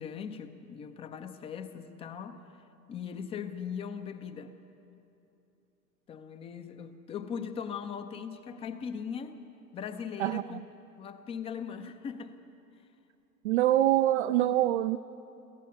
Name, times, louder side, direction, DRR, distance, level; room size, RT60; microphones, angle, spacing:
voice 1, 0.0-2.5 2.9-4.6 6.1-9.4 9.7-10.6 11.0-12.4, left 7 dB, 10° left, 0.5 m, -39 dB
voice 2, 10.2-10.6 13.4-15.0, right 13 dB, 45° right, 0.4 m, -25 dB
23.0 x 17.0 x 6.8 m
figure-of-eight pair, 100°, 50 cm